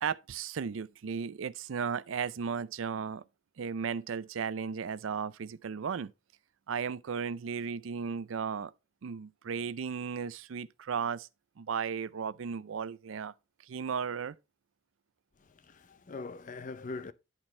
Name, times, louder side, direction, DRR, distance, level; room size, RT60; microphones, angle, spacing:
voice 1, 0.0-3.2 3.6-6.1 6.7-8.7 9.0-11.3 11.6-13.3 13.6-14.4, right 6 dB, 80° right, 0.4 m, -35 dB
voice 2, 15.4-17.1, left 3 dB, 40° left, 0.5 m, -42 dB
10.5 x 4.3 x 4.3 m
head